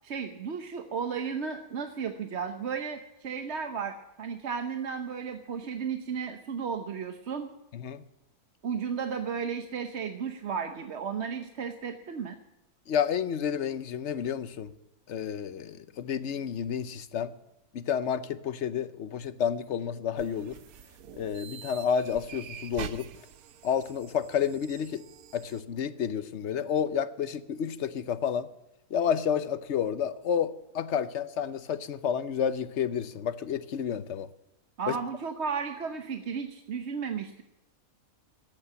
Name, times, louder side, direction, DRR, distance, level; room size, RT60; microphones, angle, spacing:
voice 1, 0.0-7.5 8.6-12.4 34.8-37.4, right 6 dB, 55° right, 7 dB, 1.1 m, -34 dB
voice 2, 7.7-8.0 12.9-14.7 15.1-17.3 17.7-20.6 21.1-23.1 23.6-25.0 25.3-28.5 28.9-34.3 34.9-35.0, left 8 dB, 60° left, 13 dB, 1.0 m, -30 dB
sound 1, 20.2-25.6, right 9 dB, 80° right, 1.2 m, -45 dB
14.0 x 8.8 x 8.5 m, 0.90 s
omnidirectional pair, 1.5 m